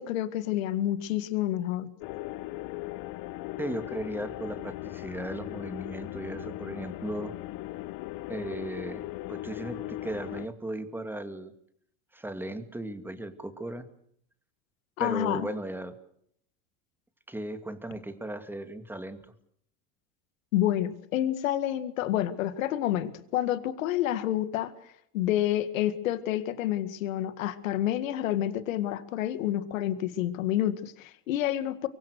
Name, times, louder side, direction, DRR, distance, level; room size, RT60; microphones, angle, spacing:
voice 1, 0.0-1.9 15.0-15.5 20.5-24.7 25.1-31.9, left 12 dB, 90° left, 12 dB, 2.0 m, -29 dB
sound 1, 2.0-10.5, left 17 dB, 55° left, 1.1 m, -38 dB
voice 2, 3.6-7.3 8.3-9.0 9.3-11.5 12.1-13.9 15.0-15.9 17.3-19.2, right 1 dB, 5° right, 9 dB, 2.4 m, -36 dB
24.5 x 23.5 x 6.5 m, 0.68 s
supercardioid pair, 115°, 39 cm